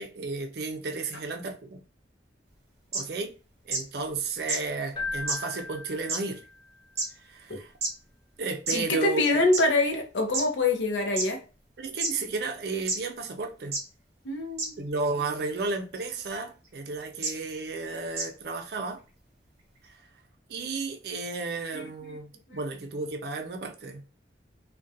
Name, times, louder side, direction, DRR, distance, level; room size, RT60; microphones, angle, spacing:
voice 1, 0.0-1.8 2.9-3.3 3.7-6.4 7.3-7.7 8.4-9.4 11.8-13.7 14.8-19.0 19.9-20.0 20.5-24.0, right 3 dB, 60° right, 0.5 m, -33 dB
sound 1, 2.9-3.0 3.7-3.8 4.5-4.6 5.3-5.4 6.1-6.2 7.0-7.1 7.8-7.9 8.7-8.8 9.5-9.6 10.3-10.4 11.2-11.3 12.0-12.1 12.9-13.0 13.7-13.8 14.6-14.7 15.9-16.1 17.2-17.3 18.2-18.3, right 3 dB, 35° right, 0.9 m, -28 dB
Keyboard (musical), 4.9-6.8, left 3 dB, 25° left, 0.5 m, -37 dB
voice 2, 8.7-11.4 14.2-14.8 21.7-21.8, left 2 dB, 85° left, 0.6 m, -25 dB
2.4 x 2.2 x 2.5 m
head